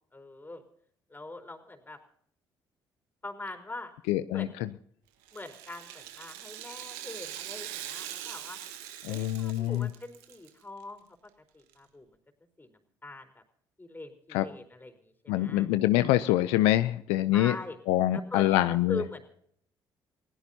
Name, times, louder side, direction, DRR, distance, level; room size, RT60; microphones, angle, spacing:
voice 1, 0.1-0.6 1.1-2.0 3.2-3.9 4.3-4.6 5.3-8.6 9.1-11.1 11.5-12.1 12.6-13.4 13.8-15.7 17.3-17.8 18.1-19.3, left 2 dB, 20° left, 5 dB, 4.3 m, -42 dB
voice 2, 4.1-4.5 9.0-9.9 14.3-14.4 15.3-17.6 17.9-19.0, left 15 dB, 80° left, 13 dB, 0.6 m, -25 dB
Rattle (instrument), 5.2-10.5 10.8-10.9 11.7-11.8, right 12 dB, 85° right, 1.5 m, -42 dB
28.5 x 17.0 x 2.9 m, 0.64 s
hypercardioid pair, 55°, 10 cm